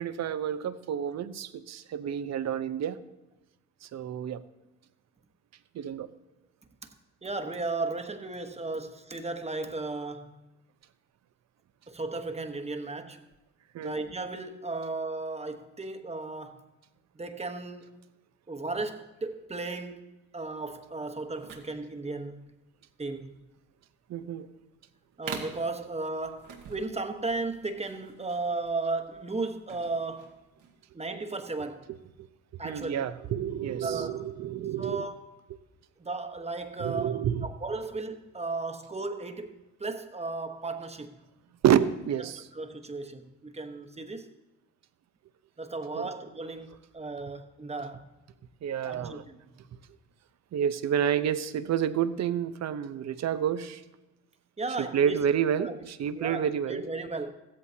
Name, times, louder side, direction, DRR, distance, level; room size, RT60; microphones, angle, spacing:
voice 1, 0.0-3.0 3.9-4.4 5.7-6.1 13.7-14.0 24.1-24.5 32.6-35.1 36.8-37.5 41.6-42.5 46.0-46.1 48.6-49.2 50.5-53.8 54.9-56.8, right 9 dB, 60° right, 0.8 m, -29 dB
voice 2, 7.2-10.4 11.9-13.2 13.8-16.6 17.1-18.0 18.5-22.4 23.0-23.4 25.2-30.4 30.9-31.9 32.6-33.1 33.8-34.2 34.8-35.2 36.0-41.2 42.5-44.3 45.6-48.1 48.8-49.4 54.6-55.2 55.6-55.7 56.1-57.3, right 3 dB, 20° right, 1.2 m, -35 dB
sound 1, 21.3-30.8, right 6 dB, 85° right, 1.8 m, -46 dB
15.5 x 14.0 x 2.8 m
cardioid pair, 90°, 30 cm